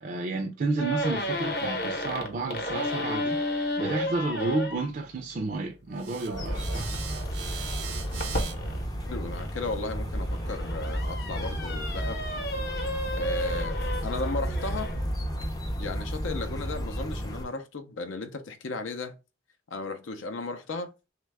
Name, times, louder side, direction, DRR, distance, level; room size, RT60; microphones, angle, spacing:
voice 1, 0.0-3.4 3.8-6.9, right 3 dB, 45° right, 0.4 m, -31 dB
sound 1, 0.8-4.9 6.3-9.5 10.1-15.1, left 1 dB, 50° left, 0.8 m, -33 dB
sound 2, 5.9-11.1, right 7 dB, 80° right, 0.7 m, -42 dB
sound 3, 6.3-17.5, equal, 20° left, 0.4 m, -32 dB
voice 2, 9.1-12.2 13.1-14.9 15.8-19.2 19.7-20.9, left 3 dB, 80° left, 0.5 m, -35 dB
3.1 x 2.2 x 3.3 m
head